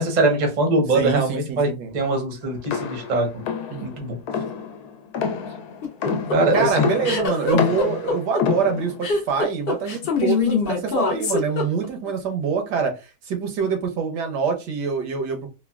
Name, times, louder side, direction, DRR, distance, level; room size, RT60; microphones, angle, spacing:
voice 1, 0.0-1.7 1.9-3.3 3.8-4.2 6.3-6.9, right 2 dB, 40° right, 0.6 m, -22 dB
voice 2, 0.9-2.0 3.7-3.9 6.5-13.0 13.2-15.5, right 6 dB, 85° right, 1.4 m, -25 dB
sound 1, 2.6-9.1, left 6 dB, 75° left, 1.0 m, -27 dB
sound 2, 5.8-12.1, left 4 dB, 55° left, 0.6 m, -24 dB
3.4 x 2.2 x 2.3 m
omnidirectional pair, 1.7 m